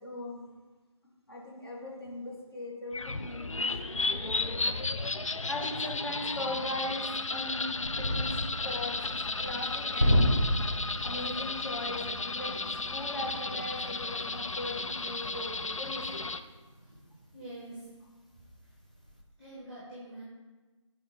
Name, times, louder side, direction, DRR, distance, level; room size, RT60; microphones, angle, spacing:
voice 1, 0.0-0.4 1.3-4.7 5.5-10.2 11.0-16.2, left 1 dB, 50° left, -1 dB, 2.0 m, -39 dB
sound 1, 2.9-16.4, left 3 dB, 75° left, 0.5 m, -34 dB
sound 2, 7.8-17.6 17.9-18.1 18.5-19.2, equal, 15° left, 0.3 m, -33 dB
voice 2, 17.3-18.0 19.4-20.2, right 1 dB, 5° right, -7 dB, 0.9 m, -45 dB
9.9 x 4.0 x 4.3 m, 1.2 s
figure-of-eight pair, 155°, 17 cm